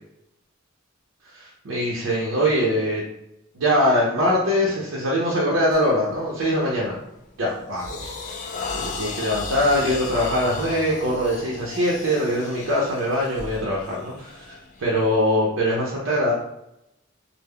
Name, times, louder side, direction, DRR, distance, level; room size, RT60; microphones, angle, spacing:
voice 1, 1.3-3.0 3.5-7.0 7.4-14.5 14.8-16.3, equal, 75° right, -5 dB, 0.6 m, -23 dB
sound 1, 5.7-5.9 6.4-6.7 7.2-15.3, left 4 dB, 40° left, 0.3 m, -35 dB
2.2 x 2.0 x 3.4 m, 0.85 s
head